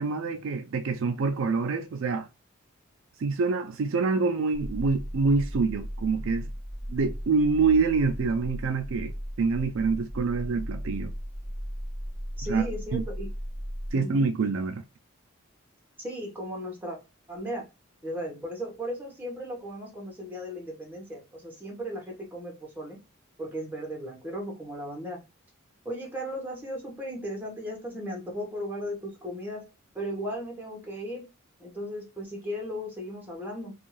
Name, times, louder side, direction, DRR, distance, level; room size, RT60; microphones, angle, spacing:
voice 1, 0.0-2.3 3.2-6.5 6.9-11.1 12.5-12.7 12.9-13.0 13.9-14.8, right 4 dB, 65° right, 0.4 m, -26 dB
sound 1, 4.5-13.9, equal, 10° left, 1.2 m, -36 dB
voice 2, 12.4-13.3 13.9-14.1 16.0-17.0 17.3-17.6 18.0-23.0 23.4-25.2 25.8-29.6 29.9-31.2 31.6-33.7, equal, 10° right, 1.0 m, -36 dB
2.6 x 2.3 x 3.0 m
head